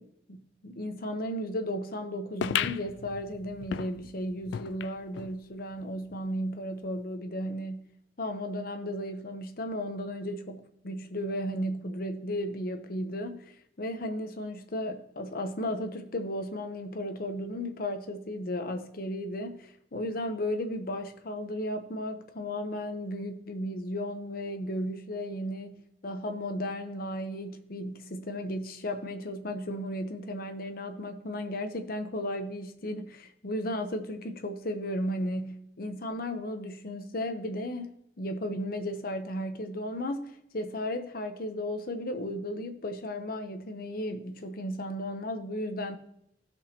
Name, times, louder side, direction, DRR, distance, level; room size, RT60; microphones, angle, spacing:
voice 1, 0.0-46.0, left 1 dB, 55° left, 0.9 m, -35 dB
sound 1, 2.4-5.4 5.8-5.9 6.1-6.2 7.0-7.1, left 8 dB, 85° left, 0.3 m, -35 dB
16.0 x 6.2 x 2.9 m
head